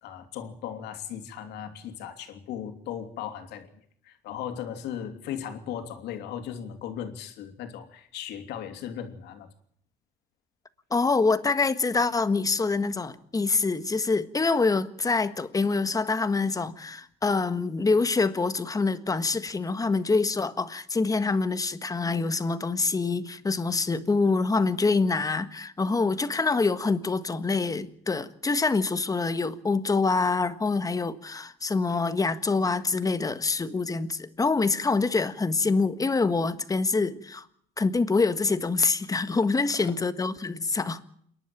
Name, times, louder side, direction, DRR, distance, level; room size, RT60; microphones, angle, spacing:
voice 1, 0.0-9.5 39.8-39.9, left 9 dB, 85° left, 3.1 m, -37 dB
voice 2, 10.9-37.4 37.8-41.0, left 4 dB, 20° left, 1.5 m, -25 dB
28.0 x 11.5 x 9.1 m
cardioid pair, 110°, 17 cm